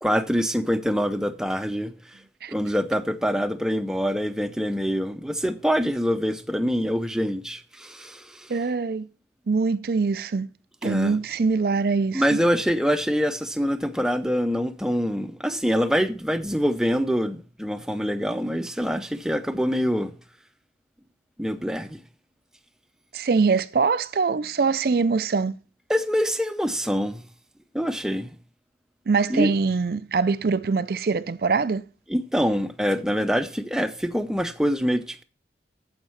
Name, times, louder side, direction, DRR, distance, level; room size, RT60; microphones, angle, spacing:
voice 1, 0.0-1.9 2.5-8.5 10.8-11.2 12.1-20.1 21.4-22.0 25.9-27.2 27.7-28.4 29.3-29.5 32.1-35.2, equal, 5° right, 0.6 m, -25 dB
voice 2, 8.5-9.1 9.5-10.5 10.8-12.2 23.1-25.6 29.1-31.8, right 4 dB, 55° right, 0.4 m, -23 dB
9.0 x 7.3 x 5.7 m
head